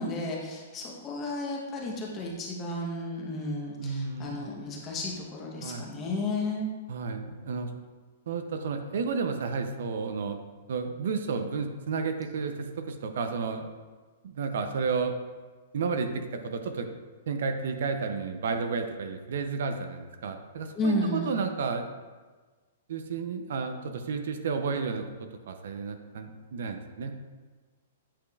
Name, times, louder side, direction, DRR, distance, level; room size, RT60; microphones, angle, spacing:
voice 1, 0.0-6.7 20.7-21.4, left 1 dB, 20° left, -2 dB, 0.9 m, -32 dB
voice 2, 3.8-4.4 5.6-5.9 6.9-7.7 8.3-10.4 10.7-13.7 14.2-15.1 15.7-16.9 17.3-21.8 22.9-27.1, right 5 dB, 65° right, 7 dB, 0.5 m, -32 dB
8.5 x 5.0 x 2.3 m, 1.3 s
hypercardioid pair, 170°, 0 cm